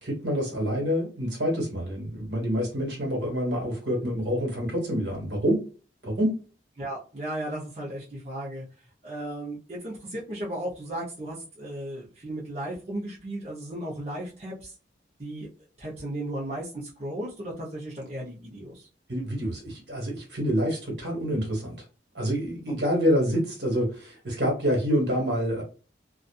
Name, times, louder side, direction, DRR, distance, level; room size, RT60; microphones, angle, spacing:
voice 1, 0.0-5.6 6.0-6.3 19.1-21.7 22.1-25.6, equal, 65° right, 0 dB, 1.4 m, -27 dB
voice 2, 6.8-8.7 9.0-14.7 15.2-15.5 15.8-18.9, right 1 dB, 35° right, -6 dB, 0.7 m, -35 dB
2.6 x 2.4 x 2.3 m, 0.35 s
head